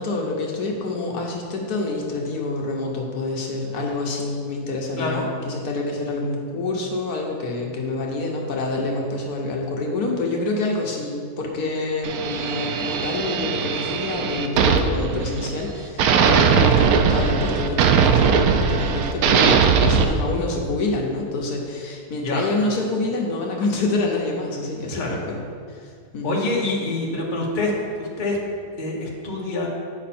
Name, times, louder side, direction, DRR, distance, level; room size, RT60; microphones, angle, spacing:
voice 1, 0.0-25.4 25.7-26.4, left 2 dB, 70° left, 0 dB, 1.4 m, -27 dB
sound 1, 12.0-15.7 16.0-20.0, right 6 dB, 70° right, 1.0 m, -19 dB
voice 2, 26.2-27.7 28.0-28.4 28.8-29.7, left 2 dB, 35° left, -2 dB, 1.1 m, -26 dB
8.4 x 5.5 x 4.3 m, 2.2 s
omnidirectional pair, 1.7 m